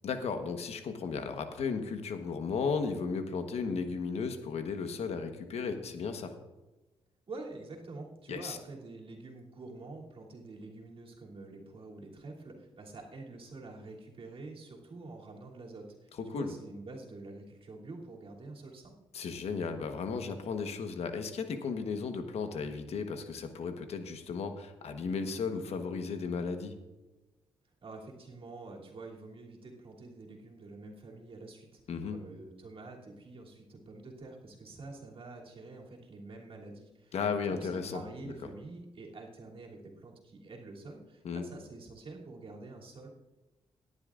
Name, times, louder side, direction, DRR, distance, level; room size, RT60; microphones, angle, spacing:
voice 1, 0.0-6.3 8.3-8.6 16.2-16.5 19.1-26.7 31.9-32.2 37.1-38.3 41.2-41.4, left 5 dB, 70° left, 7 dB, 1.2 m, -35 dB
voice 2, 7.3-18.9 27.8-31.8 32.1-37.1 37.5-43.1, right 3 dB, 60° right, -2 dB, 3.0 m, -47 dB
17.5 x 10.5 x 2.5 m, 1.1 s
cardioid pair, 60°, 11 cm